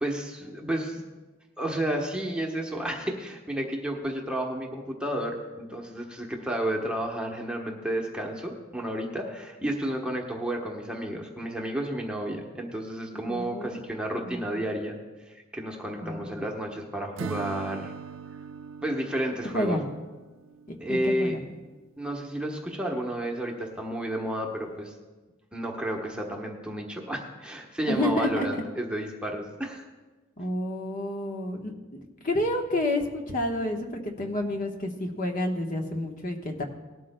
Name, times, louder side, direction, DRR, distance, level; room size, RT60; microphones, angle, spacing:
voice 1, 0.0-1.0 1.6-17.9 18.8-19.8 20.8-21.4 22.0-24.9 25.5-29.9, right 1 dB, 5° right, 0 dB, 1.0 m, -31 dB
voice 2, 13.1-13.8 14.1-14.6 16.0-16.3 19.5-19.9 20.7-21.4 27.9-28.6 30.4-31.7 32.2-36.6, left 1 dB, 40° left, 2 dB, 1.1 m, -29 dB
Acoustic guitar / Strum, 17.2-21.1, right 5 dB, 70° right, 0.4 m, -40 dB
19.0 x 12.5 x 2.2 m, 1.3 s
head